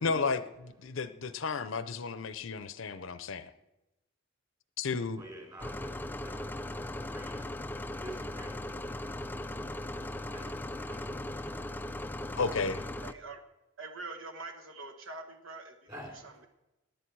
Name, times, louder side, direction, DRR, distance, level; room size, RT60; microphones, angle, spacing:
voice 1, 0.0-3.5 4.8-5.3 12.4-12.9, left 4 dB, 65° left, 13 dB, 0.7 m, -33 dB
voice 2, 5.2-5.9 6.2-7.5 7.9-8.7 10.3-10.5 10.8-11.1 11.4-11.5 15.9-16.2, right 1 dB, 20° right, 0 dB, 3.5 m, -47 dB
sound 1, 5.6-13.1, left 1 dB, 10° left, 0.4 m, -38 dB
voice 3, 13.0-13.4 13.8-16.5, right 3 dB, 65° right, 6 dB, 1.4 m, -45 dB
18.5 x 10.5 x 4.7 m, 0.95 s
head